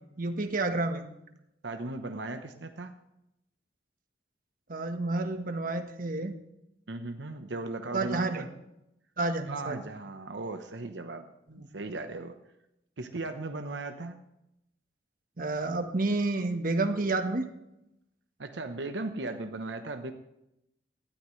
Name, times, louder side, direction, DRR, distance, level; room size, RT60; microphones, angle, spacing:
voice 1, 0.2-1.0 4.7-6.3 7.9-8.5 9.2-9.8 11.5-11.7 15.4-17.5, right 2 dB, 50° right, 6 dB, 1.3 m, -30 dB
voice 2, 1.6-2.9 6.9-8.5 9.4-11.3 11.7-12.4 13.0-14.2 18.4-20.1, right 2 dB, 80° right, 6 dB, 1.0 m, -37 dB
18.0 x 13.0 x 3.2 m, 0.85 s
head